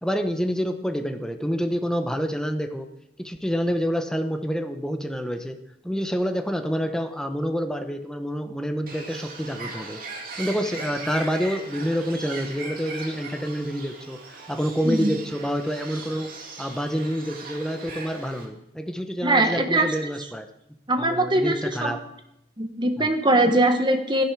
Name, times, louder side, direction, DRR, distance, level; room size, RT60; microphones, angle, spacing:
voice 1, 0.0-2.9 3.2-5.6 5.8-10.0 10.4-20.5 21.0-22.0 23.0-23.1, equal, 5° left, 6 dB, 0.9 m, -28 dB
Bird, 8.9-18.5, right 3 dB, 50° right, 2.5 m, -39 dB
voice 2, 19.2-19.9 20.9-21.9 22.6-24.2, right 1 dB, 25° right, 6 dB, 1.3 m, -21 dB
16.0 x 10.5 x 4.8 m, 0.83 s
head